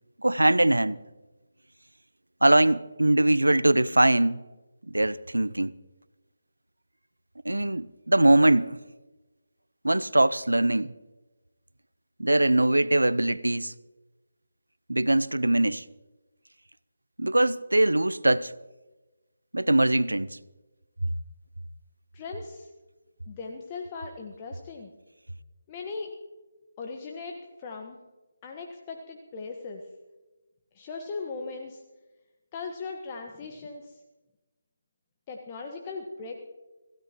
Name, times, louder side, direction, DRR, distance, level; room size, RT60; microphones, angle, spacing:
voice 1, 0.2-1.0 2.4-4.4 4.9-5.7 7.4-8.8 9.8-10.9 12.2-13.7 14.9-15.8 17.2-18.5 19.5-20.3, right 1 dB, 85° right, 0.6 m, -22 dB
voice 2, 22.1-22.7 23.3-24.9 25.7-26.1 26.8-28.0 28.4-29.8 30.7-31.8 32.5-34.0 35.3-36.4, left 4 dB, 25° left, 1.3 m, -38 dB
26.0 x 16.0 x 3.0 m
figure-of-eight pair, 155°, 0 cm